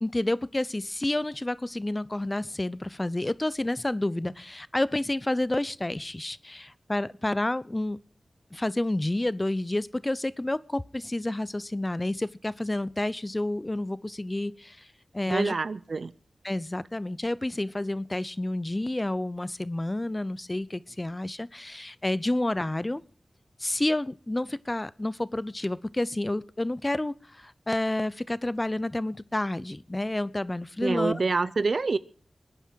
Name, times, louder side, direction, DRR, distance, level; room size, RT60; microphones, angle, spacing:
voice 1, 0.0-8.0 8.5-14.9 15.1-15.5 16.4-23.0 23.6-31.2, left 1 dB, 25° left, 19 dB, 0.7 m, -29 dB
voice 2, 15.3-16.1 30.8-32.0, right 4 dB, 70° right, 16 dB, 0.7 m, -26 dB
22.0 x 9.9 x 4.6 m, 0.41 s
cardioid pair, 45°, 0 cm